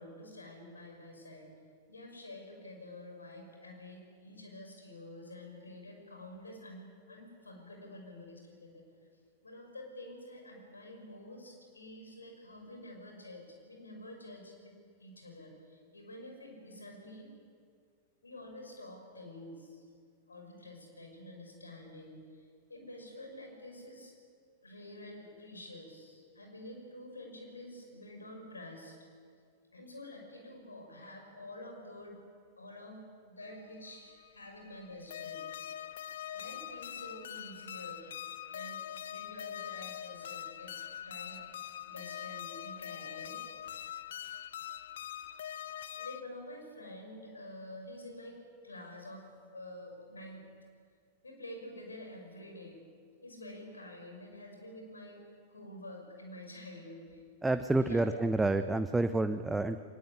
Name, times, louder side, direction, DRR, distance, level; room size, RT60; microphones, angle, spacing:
voice 1, 0.0-1.5 1.9-8.8 9.4-14.7 15.0-17.3 18.2-19.9 20.3-24.1 24.6-29.0 29.7-32.2 32.6-35.4 36.3-38.2 38.5-40.7 41.0-43.4 45.9-48.4 48.6-49.2 49.5-50.4 51.2-52.8 53.2-55.2 55.5-57.2 57.7-58.1, left 1 dB, 80° left, 2 dB, 6.1 m, -48 dB
sound 1, 33.5-46.2, left 10 dB, 60° left, 0.7 m, -43 dB
voice 2, 57.4-59.8, right 2 dB, 10° right, 10 dB, 0.9 m, -29 dB
22.5 x 20.0 x 9.6 m, 2.1 s
figure-of-eight pair, 90°, 0 cm